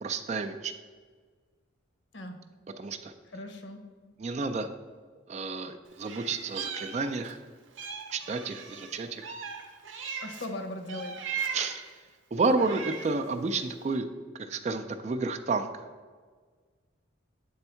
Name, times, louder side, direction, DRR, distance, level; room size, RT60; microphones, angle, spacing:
voice 1, 0.0-0.7 2.8-3.1 4.2-4.7 5.3-7.4 8.1-9.3 11.5-11.9 12.3-14.1 14.4-15.7, right 3 dB, 35° right, 8 dB, 0.3 m, -30 dB
voice 2, 3.3-3.8 10.2-11.1, left 1 dB, 65° left, 5 dB, 0.7 m, -38 dB
Meow, 6.0-7.4 7.8-10.5 10.9-11.9 12.4-13.3, right 6 dB, 80° right, 0.7 m, -38 dB
7.8 x 3.5 x 4.3 m, 1.5 s
head